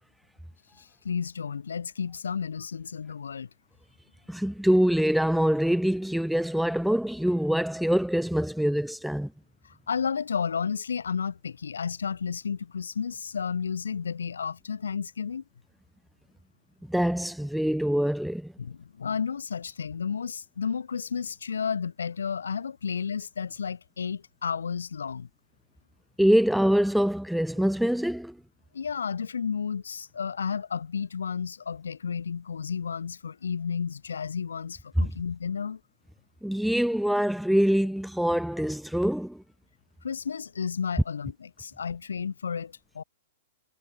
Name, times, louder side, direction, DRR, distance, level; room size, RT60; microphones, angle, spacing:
voice 1, 0.8-3.5 9.6-15.4 18.6-25.3 28.7-35.8 40.0-43.0, left 6 dB, 85° left, 2.2 m, -32 dB
voice 2, 4.3-9.3 16.9-18.5 26.2-28.3 36.4-39.4, equal, ahead, 0.8 m, -24 dB
hypercardioid pair, 120°, 0 cm